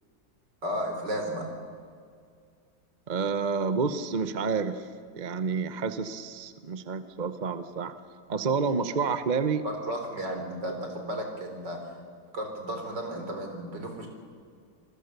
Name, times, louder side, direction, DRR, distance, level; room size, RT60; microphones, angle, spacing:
voice 1, 0.6-1.5 9.6-11.8 12.3-14.1, equal, 60° right, 3 dB, 4.5 m, -33 dB
voice 2, 3.1-4.9 5.1-7.9 8.3-9.6, right 5 dB, 35° right, 10 dB, 0.7 m, -29 dB
27.5 x 20.5 x 6.8 m, 2.2 s
omnidirectional pair, 2.2 m